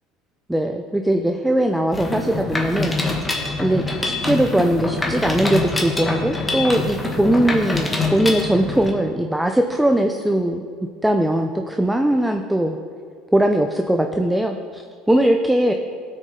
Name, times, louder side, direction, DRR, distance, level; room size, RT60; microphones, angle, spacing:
voice 1, 0.5-3.0 3.6-10.7 11.0-12.8 13.3-15.7, right 1 dB, 5° right, 4 dB, 0.6 m, -20 dB
Mechanisms, 1.9-8.9, left 2 dB, 15° left, 1.6 m, -25 dB
16.0 x 6.4 x 3.9 m, 2.1 s
supercardioid pair, 95°, 0 cm